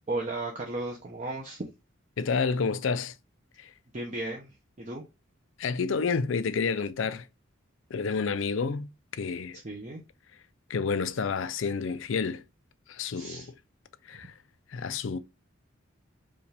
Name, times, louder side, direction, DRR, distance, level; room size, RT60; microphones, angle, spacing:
voice 1, 0.1-1.6 3.9-5.0 9.6-10.0 13.1-13.5, right 2 dB, 35° right, 0.8 m, -35 dB
voice 2, 2.2-3.1 3.6-3.7 5.6-7.3 7.9-9.6 10.7-12.4 12.9-13.5 14.1-14.3 14.7-15.2, left 5 dB, 75° left, 0.5 m, -29 dB
5.1 x 2.5 x 3.3 m
head